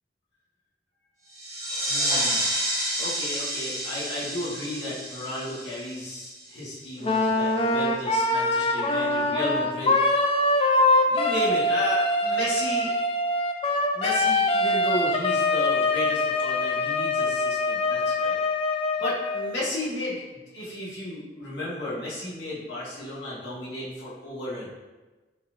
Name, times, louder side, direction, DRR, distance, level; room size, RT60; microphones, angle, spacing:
sound 1, 1.3-6.6, right 1 dB, 20° right, 0.8 m, -29 dB
voice 1, 1.9-2.5 3.0-10.0 11.0-12.9 13.9-18.4 19.0-20.2 20.5-24.7, left 1 dB, 90° left, -7 dB, 1.5 m, -33 dB
Wind instrument woodwind instrument, 7.0-19.5, left 2 dB, 30° left, 0.4 m, -23 dB
4.1 x 3.7 x 2.5 m, 1.2 s
head